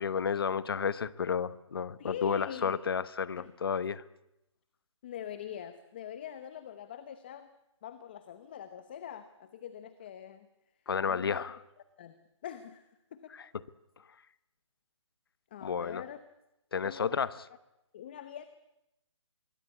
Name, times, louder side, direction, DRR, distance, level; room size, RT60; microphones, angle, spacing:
voice 1, 0.0-4.0 10.9-11.6 13.3-13.4 15.6-16.0 16.7-17.3, left 6 dB, 45° left, 17 dB, 1.0 m, -31 dB
voice 2, 2.0-2.8 3.4-3.5 5.0-7.5 7.8-10.5 11.1-11.4 12.0-12.8 13.1-13.4 15.5-16.2 16.8-17.1 17.9-18.4, left 9 dB, 20° left, 12 dB, 0.9 m, -43 dB
25.0 x 23.0 x 8.4 m, 0.89 s
hypercardioid pair, 170°, 16 cm